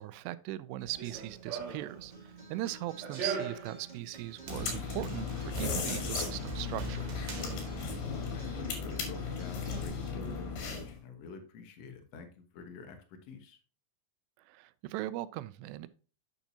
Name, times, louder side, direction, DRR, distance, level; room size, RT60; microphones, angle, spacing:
voice 1, 0.0-2.1 2.5-7.0 14.5-15.9, right 15 dB, 85° right, 16 dB, 2.7 m, -39 dB
Run, 0.8-8.5, right 6 dB, 50° right, 2.7 m, -42 dB
Acoustic guitar, 1.9-9.9, right 1 dB, 15° right, 2.0 m, -53 dB
sound 1, 4.5-11.0, left 5 dB, 85° left, 4.5 m, -36 dB
voice 2, 8.0-13.6, left 4 dB, 70° left, 6 dB, 1.6 m, -48 dB
9.1 x 7.2 x 2.7 m, 0.36 s
omnidirectional pair, 4.9 m